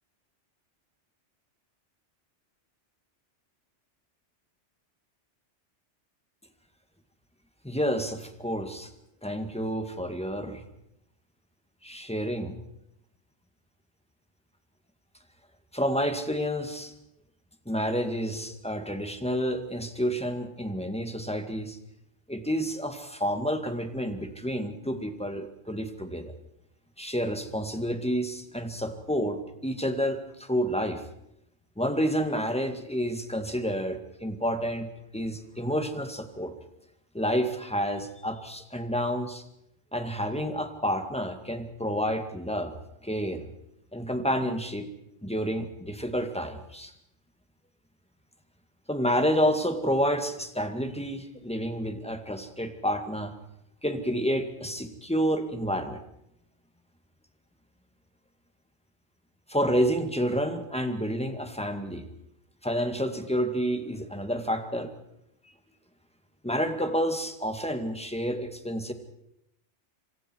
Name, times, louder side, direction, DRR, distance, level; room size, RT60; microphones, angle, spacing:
voice 1, 7.6-8.9 9.2-10.6 11.8-12.6 15.7-16.9 17.7-21.8 22.3-26.3 27.0-31.0 31.8-34.9 35.1-36.5 37.1-39.4 39.9-42.7 43.0-43.5 43.9-44.9 45.2-46.9 48.9-53.3 53.8-56.0 59.5-62.1 62.6-64.9 66.4-68.9, equal, 5° left, 6 dB, 2.0 m, -29 dB
26.5 x 26.0 x 4.7 m, 0.81 s
omnidirectional pair, 1.2 m